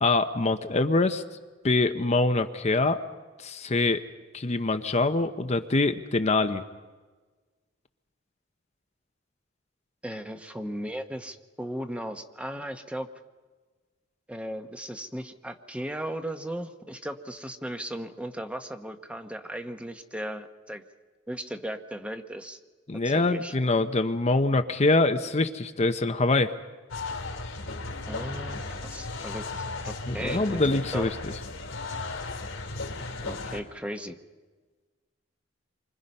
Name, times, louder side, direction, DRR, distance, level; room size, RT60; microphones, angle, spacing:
voice 1, 0.0-1.2 1.6-3.0 3.4-4.0 4.3-6.6 22.9-26.5 30.1-31.1, left 2 dB, 35° left, 8 dB, 0.8 m, -24 dB
voice 2, 10.0-13.1 14.3-20.8 21.3-22.6 23.0-23.5 28.1-29.5 29.8-30.6 30.9-31.1 33.2-34.2, equal, 5° right, 7 dB, 1.1 m, -36 dB
sound 1, 26.9-33.6, left 3 dB, 90° left, 2.8 m, -35 dB
28.0 x 25.0 x 5.5 m, 1.4 s
head